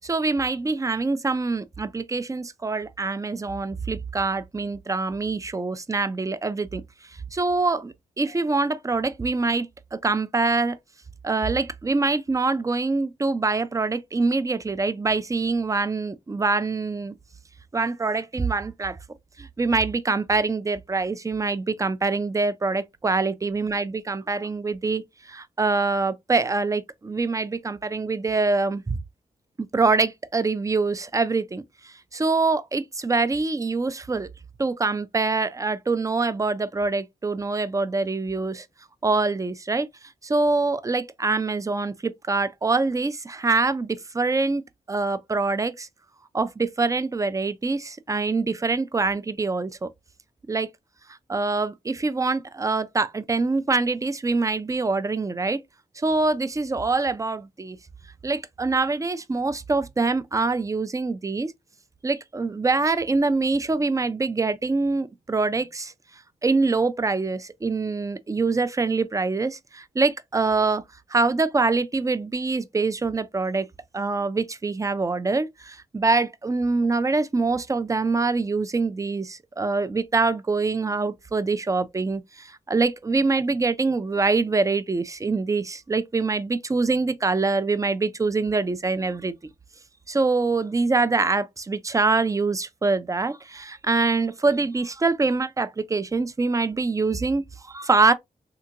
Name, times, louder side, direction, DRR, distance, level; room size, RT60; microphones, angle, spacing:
voice 1, 0.0-6.8 7.3-10.8 11.2-17.2 17.7-19.0 19.4-29.0 29.7-34.3 34.6-38.7 39.0-39.9 40.2-44.6 44.9-45.9 46.3-49.9 50.5-50.7 51.3-55.6 56.0-57.8 58.2-61.5 62.0-65.9 66.4-70.8 71.1-73.7 73.9-89.3 90.1-98.1, right 3 dB, 20° right, 0.4 m, -24 dB
3.5 x 2.8 x 2.4 m
cardioid pair, 85°, 16 cm